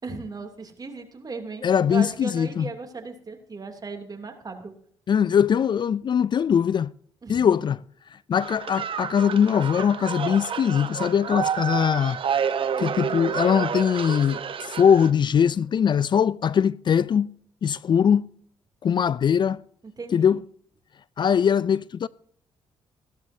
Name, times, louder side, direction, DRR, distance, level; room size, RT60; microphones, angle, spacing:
voice 1, 0.0-4.7 7.2-7.6 20.0-20.4, right 4 dB, 35° right, 2.8 m, -37 dB
voice 2, 1.6-2.7 5.1-6.9 7.3-7.8 8.1-12.2 12.8-17.3 17.6-18.3 18.8-19.6 20.1-20.4 21.2-22.1, left 8 dB, 45° left, 0.4 m, -21 dB
sound 1, 8.4-15.1, right 7 dB, 55° right, 1.1 m, -29 dB
15.5 x 12.5 x 2.8 m
supercardioid pair, 55°, 11 cm